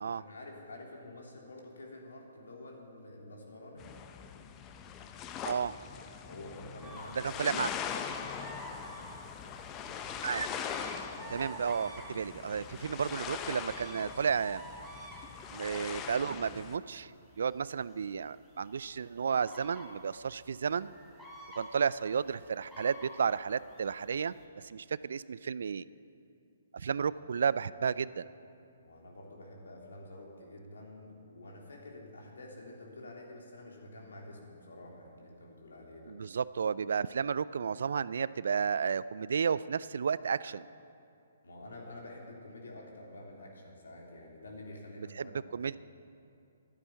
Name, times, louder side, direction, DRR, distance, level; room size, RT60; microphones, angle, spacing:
voice 1, 0.0-3.9 6.3-7.6 11.0-11.5 26.9-27.1 28.8-36.2 41.4-45.8, left 1 dB, 75° left, -1 dB, 3.3 m, -49 dB
sound 1, 3.8-16.8, left 7 dB, 25° left, 0.8 m, -41 dB
sound 2, 6.8-24.4, equal, 5° left, 3.6 m, -50 dB
voice 2, 7.2-7.7 10.2-10.5 11.3-14.6 15.5-17.1 17.4-20.9 21.6-25.9 26.7-28.3 36.1-40.7 45.0-45.8, right 6 dB, 65° right, 18 dB, 0.4 m, -32 dB
11.5 x 9.9 x 9.4 m, 2.6 s
figure-of-eight pair, 130°, 0 cm